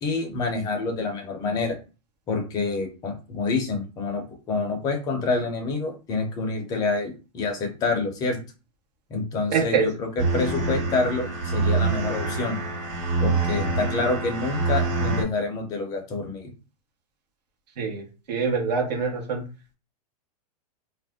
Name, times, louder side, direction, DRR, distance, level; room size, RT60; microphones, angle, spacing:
voice 1, 0.0-1.8 2.3-8.4 9.1-12.6 13.2-16.5, left 3 dB, 20° left, 3 dB, 0.6 m, -27 dB
voice 2, 9.5-9.9 17.8-19.4, right 5 dB, 75° right, 0 dB, 1.1 m, -25 dB
sound 1, 10.2-15.2, right 3 dB, 45° right, 1.5 m, -25 dB
2.5 x 2.1 x 3.4 m, 0.32 s
supercardioid pair, 160°, 21 cm